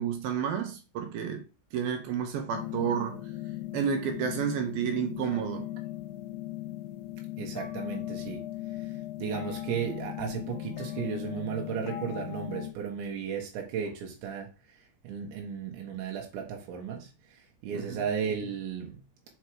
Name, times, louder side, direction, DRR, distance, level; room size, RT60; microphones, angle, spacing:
voice 1, 0.0-1.4 1.7-3.2 3.7-5.7 17.7-18.0, right 7 dB, 70° right, 2.6 m, -30 dB
sound 1, 2.5-12.7, left 14 dB, 80° left, 2.6 m, -38 dB
voice 2, 7.4-8.5 9.2-14.5 15.0-17.1 17.6-19.0, right 7 dB, 85° right, 3.6 m, -34 dB
7.2 x 4.6 x 4.6 m
omnidirectional pair, 5.0 m